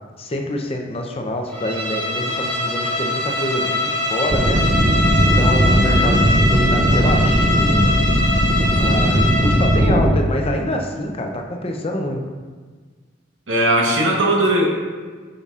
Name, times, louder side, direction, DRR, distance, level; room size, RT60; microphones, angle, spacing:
voice 1, 0.2-4.6 5.4-8.0 8.8-12.2, left 1 dB, 30° left, 2 dB, 0.6 m, -26 dB
Bowed string instrument, 1.5-9.9, left 1 dB, 10° left, 1.5 m, -23 dB
sound 1, 4.3-10.1, equal, 25° right, 0.5 m, -17 dB
voice 2, 13.5-14.7, right 1 dB, 75° right, -1 dB, 1.1 m, -17 dB
8.1 x 5.2 x 2.4 m, 1.5 s
head